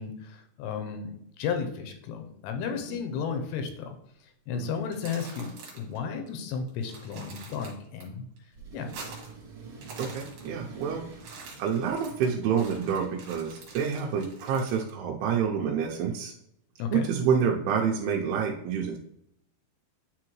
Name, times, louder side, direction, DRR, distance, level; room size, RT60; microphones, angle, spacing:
voice 1, 0.0-4.0 4.5-5.5 5.7-8.3 8.7-8.9 16.8-17.1, left 6 dB, 90° left, 5 dB, 2.8 m, -33 dB
sound 1, 4.8-6.0 6.3-6.4 6.7-8.0 8.4-9.4 9.7-10.8 11.1-14.9, right 4 dB, 60° right, 2.5 m, -46 dB
Accelerating revving vroom, 8.5-13.7, right 5 dB, 45° right, 2.3 m, -47 dB
voice 2, 10.0-11.1 11.6-16.3 16.9-19.0, right 7 dB, 85° right, -2 dB, 2.6 m, -28 dB
9.8 x 3.7 x 3.1 m, 0.74 s
omnidirectional pair, 4.7 m